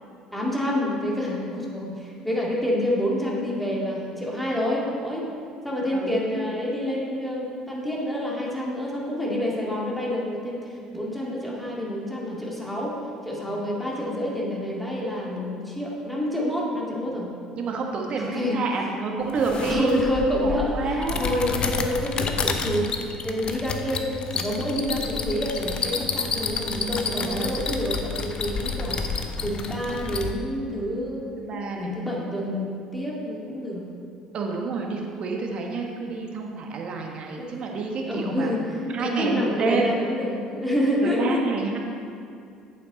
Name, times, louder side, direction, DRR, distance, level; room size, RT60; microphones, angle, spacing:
voice 1, 0.3-5.2 5.6-12.9 13.2-17.3 18.2-18.6 19.7-29.0 29.4-31.4 31.7-33.9 37.4-37.5 38.1-41.4, left 1 dB, 5° left, -4 dB, 2.3 m, -28 dB
voice 2, 17.5-20.0 20.4-21.3 26.8-27.6 31.4-32.0 32.5-32.6 34.3-38.5 38.9-40.0 41.0-41.8, right 4 dB, 50° right, 1 dB, 1.4 m, -29 dB
sound 1, 19.3-30.3, left 4 dB, 40° left, 0.7 m, -30 dB
8.5 x 7.4 x 4.0 m, 2.4 s
hypercardioid pair, 65°, 2 cm